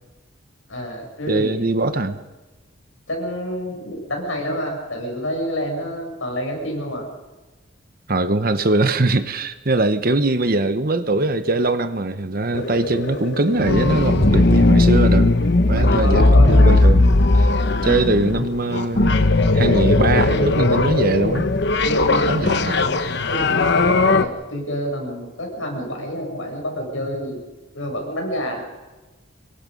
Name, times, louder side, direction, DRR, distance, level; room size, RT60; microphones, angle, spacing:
voice 1, 0.7-2.1 3.1-7.1 15.8-16.5 21.8-22.4 22.8-23.0 23.3-27.4 27.7-28.7, equal, 75° left, 1 dB, 7.5 m, -28 dB
voice 2, 1.3-2.2 8.1-15.3 15.7-17.5 17.8-19.2 19.5-21.5 22.3-22.9, right 2 dB, 45° right, 10 dB, 1.1 m, -21 dB
sound 1, 12.5-24.2, left 2 dB, 60° left, 1.1 m, -17 dB
26.0 x 23.0 x 5.4 m, 1.2 s
head